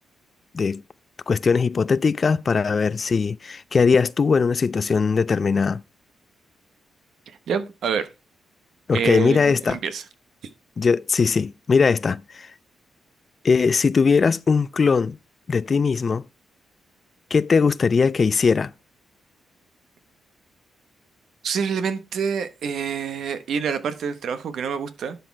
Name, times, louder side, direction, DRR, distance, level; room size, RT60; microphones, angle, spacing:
voice 1, 1.3-5.8 8.9-9.8 10.8-12.5 13.4-15.2 15.5-16.2 17.3-18.7, left 5 dB, 45° left, 0.4 m, -20 dB
voice 2, 7.5-8.1 8.9-10.0 21.4-25.2, right 7 dB, 75° right, 1.0 m, -27 dB
11.0 x 4.2 x 4.5 m
cardioid pair, 75°, 0 cm